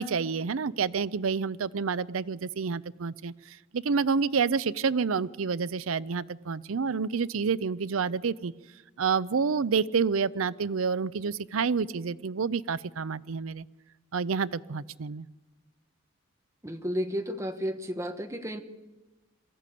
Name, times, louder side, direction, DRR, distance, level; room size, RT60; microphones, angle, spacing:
voice 1, 0.0-8.5 9.0-13.7 14.1-15.3, right 5 dB, 85° right, 16 dB, 0.6 m, -28 dB
voice 2, 16.6-18.6, equal, 15° right, 6 dB, 1.3 m, -32 dB
23.0 x 14.5 x 8.5 m, 1.2 s
head